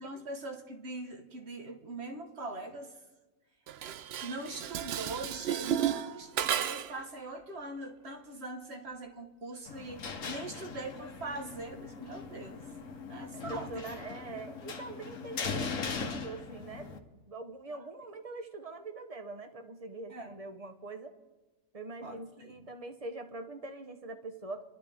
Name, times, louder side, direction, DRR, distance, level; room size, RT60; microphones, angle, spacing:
voice 1, 0.0-3.0 4.2-12.6 13.1-14.0 17.7-17.8 20.1-20.3 22.0-22.5, right 2 dB, 45° right, 5 dB, 1.7 m, -42 dB
Dishes pots and pans, 3.7-7.0, right 10 dB, 65° right, 0.6 m, -33 dB
sound 1, 9.7-17.0, left 5 dB, 60° left, 1.5 m, -40 dB
voice 2, 13.3-21.1 21.7-24.6, right 2 dB, 25° right, 7 dB, 1.0 m, -43 dB
26.0 x 12.0 x 3.6 m, 1.2 s
omnidirectional pair, 1.6 m